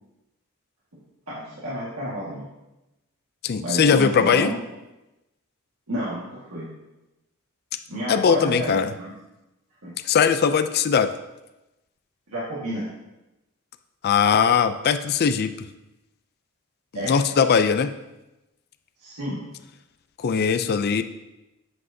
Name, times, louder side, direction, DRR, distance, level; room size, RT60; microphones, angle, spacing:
voice 1, 1.3-2.5 3.6-4.6 5.9-6.7 7.9-9.1 9.8-9.9 12.3-12.9 16.9-17.1 19.0-19.4, equal, 80° right, -8 dB, 1.7 m, -30 dB
voice 2, 3.4-4.5 8.1-8.9 10.0-11.1 14.0-15.7 17.0-17.9 20.2-21.0, left 6 dB, 45° left, 10 dB, 0.4 m, -20 dB
7.9 x 7.7 x 2.7 m, 0.97 s
head